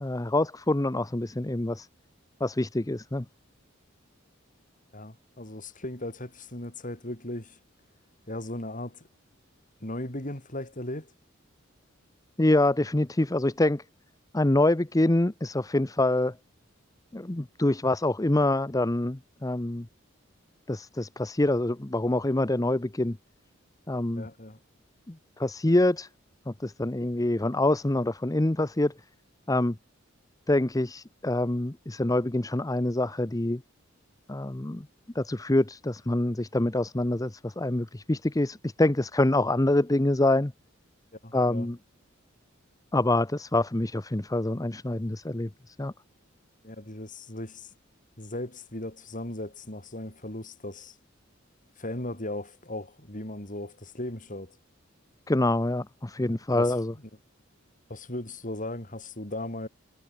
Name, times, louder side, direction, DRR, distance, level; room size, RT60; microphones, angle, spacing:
voice 1, 0.0-1.9 2.4-3.3 12.4-13.8 14.3-16.3 17.1-19.9 20.7-23.2 23.9-24.3 25.1-26.1 26.5-28.9 29.5-29.8 30.5-33.6 34.3-34.9 35.1-40.5 41.3-41.8 42.9-45.9 55.3-56.9, left 1 dB, 15° left, 0.8 m, -26 dB
voice 2, 4.9-7.6 8.3-9.1 9.8-11.1 24.2-24.6 41.2-41.7 46.6-47.7 48.2-51.0 51.8-54.6 56.2-56.7 57.9-59.7, left 1 dB, 40° left, 6.6 m, -37 dB
head